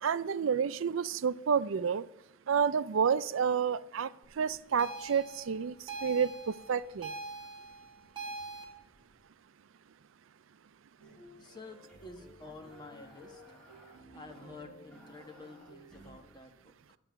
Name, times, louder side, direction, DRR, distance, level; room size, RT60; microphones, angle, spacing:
voice 1, 0.0-2.0 2.5-4.1 4.4-5.7 6.0-6.3 6.7-7.1, right 6 dB, 85° right, 16 dB, 0.4 m, -29 dB
sound 1, 4.8-8.7, right 3 dB, 25° right, 2.4 m, -43 dB
sound 2, 11.0-16.2, equal, 5° left, 4.0 m, -54 dB
voice 2, 11.4-13.4 14.1-17.0, left 3 dB, 20° left, 4 dB, 1.3 m, -50 dB
12.0 x 6.8 x 9.1 m, 0.82 s
head